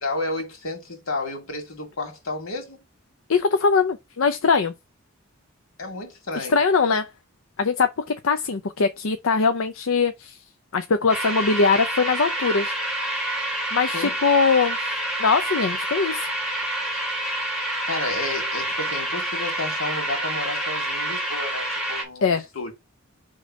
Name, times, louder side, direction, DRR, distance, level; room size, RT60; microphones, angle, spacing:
voice 1, 0.0-2.8 5.8-6.6 13.9-14.1 17.9-22.7, left 2 dB, 90° left, 2.5 m, -31 dB
voice 2, 3.3-4.7 6.3-7.1 7.6-7.9 8.2-10.4 10.7-12.7 13.7-14.8 15.2-16.3 22.2-22.4, left 5 dB, 70° left, 0.6 m, -21 dB
sound 1, 11.1-22.0, right 1 dB, 5° right, 2.3 m, -28 dB
5.2 x 3.8 x 4.9 m
head